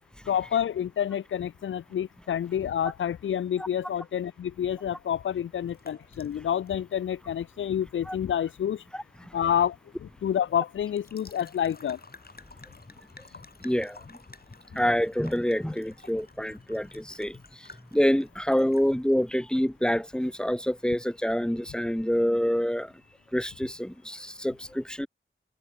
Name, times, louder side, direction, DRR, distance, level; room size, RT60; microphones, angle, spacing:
voice 1, 0.3-8.8 9.3-12.0, left 9 dB, 70° left, 0.4 m, -28 dB
sound 1, 5.7-20.7, left 3 dB, 45° left, 3.8 m, -53 dB
voice 2, 8.9-9.4 13.6-14.2 14.7-22.9 23.3-25.1, equal, 5° left, 0.9 m, -27 dB
open air
cardioid pair, 50°, 21 cm